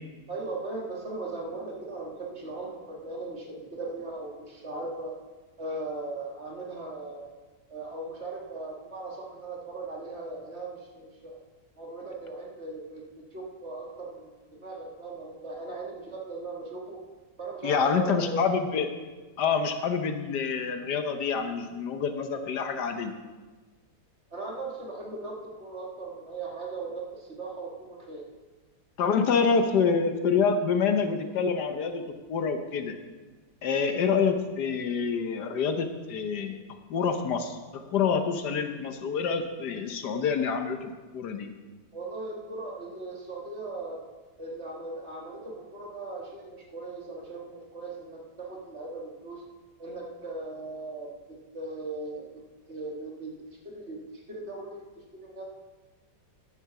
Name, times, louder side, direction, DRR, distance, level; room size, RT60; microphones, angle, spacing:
voice 1, 0.3-5.2 5.6-7.3 7.7-11.4 11.8-17.0 17.4-18.3 24.3-28.2 29.1-29.6 41.9-44.0 44.4-49.4 49.8-52.3 52.7-53.3 53.6-54.9 55.2-55.4, right 3 dB, 40° right, -1 dB, 2.1 m, -38 dB
voice 2, 17.6-18.9 19.4-23.1 29.0-32.0 32.3-32.9 33.6-36.6 36.9-41.5, left 5 dB, 75° left, 7 dB, 1.5 m, -27 dB
10.5 x 7.3 x 7.0 m, 1.3 s
omnidirectional pair, 1.8 m